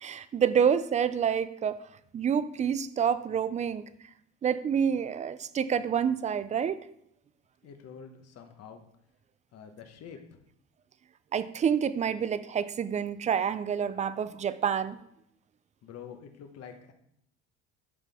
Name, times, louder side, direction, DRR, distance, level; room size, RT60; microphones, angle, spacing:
voice 1, 0.0-1.8 2.1-3.8 4.4-6.8 11.3-15.0, right 7 dB, 25° right, 15 dB, 0.3 m, -28 dB
voice 2, 7.6-8.8 9.5-10.4 15.8-16.9, left 7 dB, 55° left, 6 dB, 1.1 m, -47 dB
11.5 x 4.1 x 3.5 m, 0.74 s
cardioid pair, 100°, 30 cm